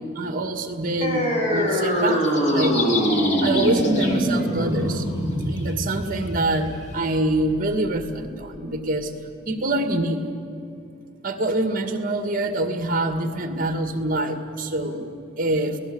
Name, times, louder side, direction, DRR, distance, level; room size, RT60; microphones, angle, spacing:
voice 1, 0.2-2.8 3.4-5.0 5.4-9.1 9.5-10.2 11.2-15.8, right 2 dB, 45° right, 6 dB, 2.0 m, -25 dB
sound 1, 1.0-8.0, equal, 35° left, 5.0 m, -23 dB
sound 2, 1.9-4.8 5.4-6.9, left 4 dB, 60° left, 2.9 m, -32 dB
29.0 x 18.5 x 8.0 m, 2.5 s
head